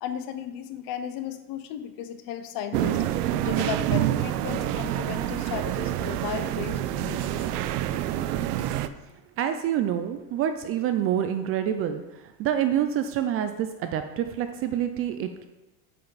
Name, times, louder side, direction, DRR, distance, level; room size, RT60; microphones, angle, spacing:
voice 1, 0.0-3.0 3.4-7.4 8.6-8.7, left 9 dB, 50° left, 10 dB, 0.8 m, -35 dB
sound 1, 2.7-8.9, right 12 dB, 85° right, 0.6 m, -27 dB
voice 2, 9.4-15.5, right 10 dB, 35° right, 8 dB, 0.4 m, -27 dB
8.5 x 5.4 x 4.0 m, 1.0 s
supercardioid pair, 125°, 45 cm